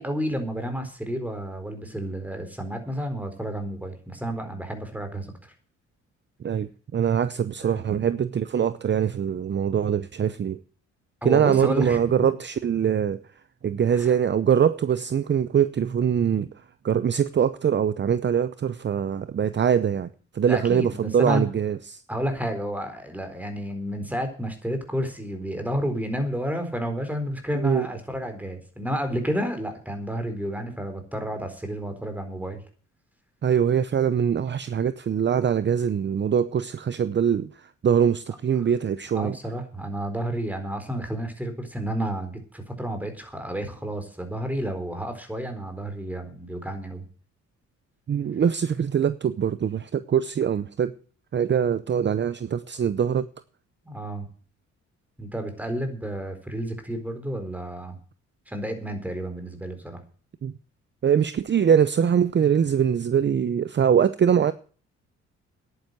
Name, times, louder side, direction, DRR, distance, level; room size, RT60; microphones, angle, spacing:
voice 1, 0.0-5.5 7.6-7.9 11.2-12.0 13.9-14.1 20.4-21.4 22.1-32.6 39.1-47.0 53.8-54.3 55.2-58.0 58.5-60.0, equal, 5° right, 4.2 m, -31 dB
voice 2, 6.4-10.6 11.2-13.2 13.6-16.5 16.8-20.1 20.3-22.0 27.5-27.9 33.4-37.5 37.8-39.3 48.1-50.9 51.3-53.3 60.4-60.5 61.0-64.5, right 8 dB, 35° right, 0.7 m, -23 dB
10.5 x 9.5 x 7.9 m
cardioid pair, 90°, 30 cm